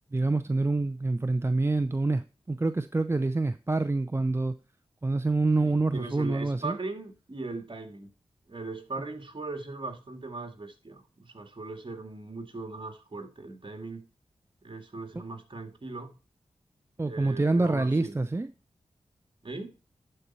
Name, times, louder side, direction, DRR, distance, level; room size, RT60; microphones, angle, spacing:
voice 1, 0.1-4.5 5.0-6.8 17.0-18.5, right 2 dB, 20° right, 0.5 m, -26 dB
voice 2, 5.6-8.1 8.5-14.1 14.6-16.2 17.0-18.1 19.4-19.7, right 3 dB, 45° right, 2.1 m, -39 dB
11.0 x 4.5 x 4.2 m
cardioid pair, 40°, 11 cm